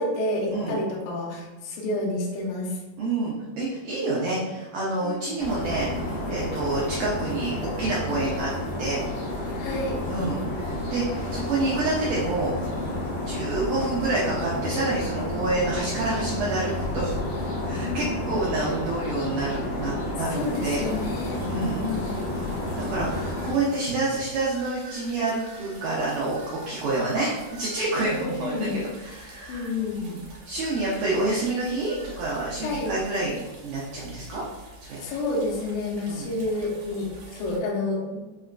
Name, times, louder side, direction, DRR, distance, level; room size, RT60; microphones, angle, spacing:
voice 1, 0.0-2.8 5.0-5.2 9.5-10.0 17.8-18.4 20.3-22.1 28.0-28.7 29.5-30.0 32.6-32.9 35.0-38.2, left 2 dB, 85° left, -2 dB, 1.8 m, -30 dB
voice 2, 3.0-7.5 7.8-8.5 8.8-9.0 10.1-12.5 13.3-17.1 17.6-20.8 21.4-21.9 22.8-26.4 26.7-30.2 30.5-33.4 33.6-34.4 34.8-35.0 36.1-36.3, right 2 dB, 90° right, -5 dB, 1.8 m, -28 dB
sound 1, 5.4-23.5, left 1 dB, 70° left, 2.0 m, -30 dB
sound 2, 20.3-37.6, right 3 dB, 75° right, 2.7 m, -47 dB
sound 3, 23.1-23.6 24.5-26.9 27.5-28.0 30.6-31.2 31.9-32.2, right 2 dB, 55° right, 1.7 m, -48 dB
6.0 x 2.4 x 2.2 m, 1.2 s
omnidirectional pair, 4.6 m